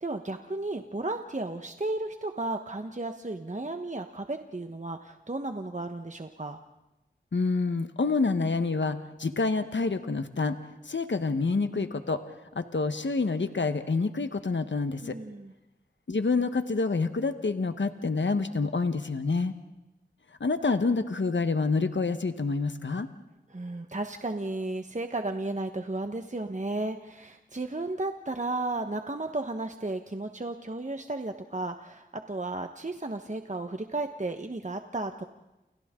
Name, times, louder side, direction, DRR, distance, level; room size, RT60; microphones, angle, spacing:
voice 1, 0.0-6.6 15.0-15.5 23.5-35.2, right 2 dB, 40° right, 6 dB, 1.2 m, -34 dB
voice 2, 7.3-10.6 10.8-12.2 12.5-15.2 16.1-19.5 20.4-23.1, left 3 dB, 70° left, 9 dB, 1.2 m, -27 dB
29.5 x 29.5 x 3.8 m, 1.0 s
wide cardioid pair, 40°, 19 cm